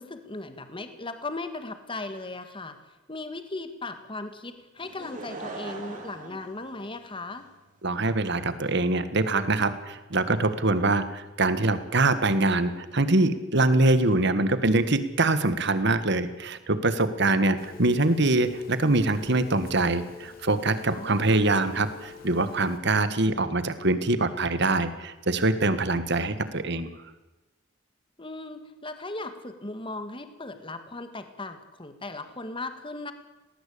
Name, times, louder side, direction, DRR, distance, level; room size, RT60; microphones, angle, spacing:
voice 1, 0.0-2.8 3.1-7.5 17.3-17.5 20.9-21.3 28.2-33.1, left 2 dB, 25° left, 9 dB, 1.9 m, -37 dB
Laughter / Crowd, 4.8-7.4 8.1-8.2, right 3 dB, 45° right, 4.7 m, -40 dB
voice 2, 7.8-26.9, right 2 dB, 60° right, 12 dB, 1.7 m, -24 dB
Telephone, 17.6-22.8, left 6 dB, 50° left, 3.1 m, -47 dB
18.5 x 18.0 x 8.6 m, 1.1 s
head